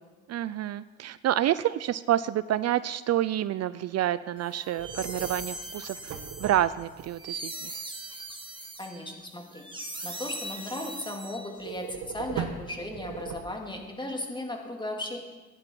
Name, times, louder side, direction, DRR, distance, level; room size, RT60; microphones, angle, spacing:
voice 1, 0.3-6.1 6.4-7.7, right 12 dB, 60° right, 16 dB, 0.4 m, -28 dB
sound 1, 4.5-11.8, right 2 dB, 15° right, 1.7 m, -40 dB
sound 2, 4.8-7.1 11.6-13.9, right 7 dB, 75° right, 1.2 m, -38 dB
voice 2, 8.8-9.6 10.0-15.2, left 1 dB, 15° left, 2 dB, 2.6 m, -36 dB
15.5 x 10.5 x 4.6 m, 1.2 s
cardioid pair, 90°, 30 cm